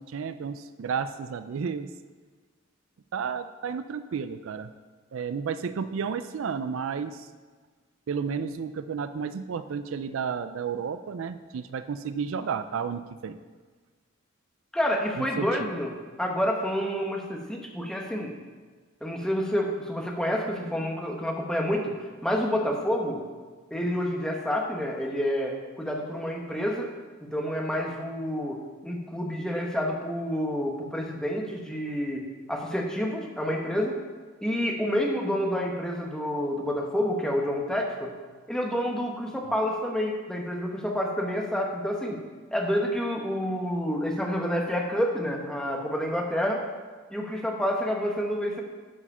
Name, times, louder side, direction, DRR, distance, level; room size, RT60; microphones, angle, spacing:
voice 1, 0.0-1.9 3.1-4.7 5.1-7.3 8.1-13.4 15.2-15.7 39.5-39.6, right 6 dB, 70° right, 11 dB, 0.4 m, -32 dB
voice 2, 14.7-15.9 16.2-18.3 19.0-21.9 22.2-23.2 23.7-26.9 27.2-32.2 32.5-33.9 34.4-38.1 38.5-42.2 42.5-46.6 47.1-48.6, equal, 5° left, 0 dB, 1.0 m, -28 dB
9.9 x 4.9 x 5.5 m, 1.4 s
head